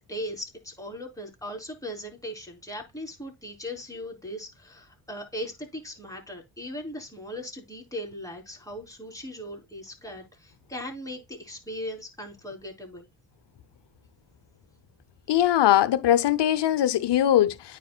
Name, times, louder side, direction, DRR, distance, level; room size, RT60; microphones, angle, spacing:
voice 1, 0.1-13.1, equal, 5° left, 4.0 m, -38 dB
voice 2, 15.3-17.8, left 12 dB, 55° left, 1.0 m, -21 dB
9.3 x 5.9 x 2.4 m
hypercardioid pair, 45°, 50 cm